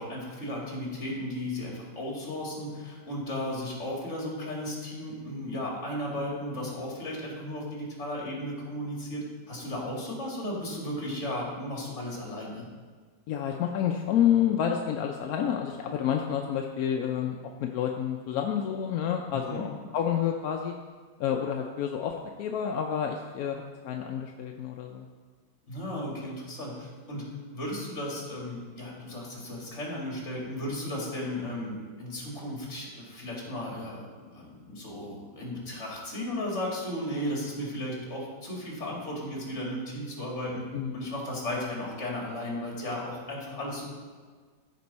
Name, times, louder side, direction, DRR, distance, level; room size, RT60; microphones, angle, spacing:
voice 1, 0.0-12.7 19.3-19.7 25.7-27.3 27.5-34.1 34.3-40.7 40.9-43.9, left 1 dB, 40° left, -3 dB, 2.5 m, -35 dB
voice 2, 13.3-20.7 21.2-25.1 40.7-40.9, left 9 dB, 70° left, 2 dB, 0.9 m, -29 dB
14.0 x 5.3 x 4.1 m, 1.5 s
omnidirectional pair, 1.9 m